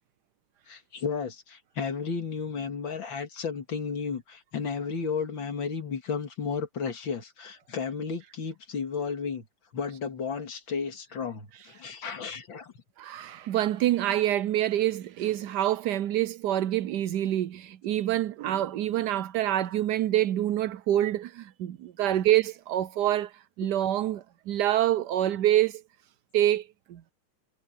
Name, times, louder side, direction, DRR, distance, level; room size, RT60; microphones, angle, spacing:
voice 1, 0.7-9.4 9.7-12.7 22.0-22.1, left 5 dB, 60° left, 2.8 m, -33 dB
voice 2, 13.0-23.3 23.6-25.8 26.3-27.0, right 12 dB, 75° right, 0.9 m, -26 dB
omnidirectional pair, 2.4 m